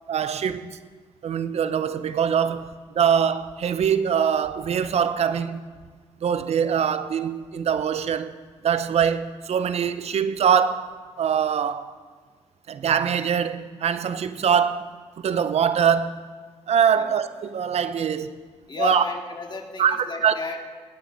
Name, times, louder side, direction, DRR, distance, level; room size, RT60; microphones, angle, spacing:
voice 1, 0.1-0.8 1.2-2.7 2.9-5.6 6.2-8.3 8.6-10.9 11.2-11.9 12.7-16.2 16.7-18.3 18.8-19.0 19.8-20.3, right 8 dB, 65° right, 0.7 m, -23 dB
voice 2, 18.7-20.6, left 3 dB, 40° left, 2.3 m, -32 dB
23.5 x 9.4 x 4.1 m
supercardioid pair, 60°, 12 cm